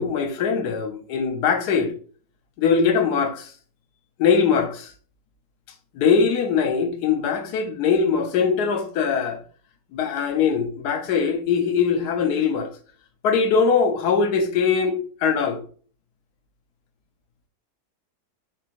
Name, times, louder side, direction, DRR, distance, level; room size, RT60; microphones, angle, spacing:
voice 1, 0.0-1.9 2.6-3.5 4.2-4.9 5.9-9.4 9.9-12.7 13.2-15.6, left 6 dB, 75° left, 1.2 m, -21 dB
4.5 x 3.0 x 2.5 m
omnidirectional pair, 1.7 m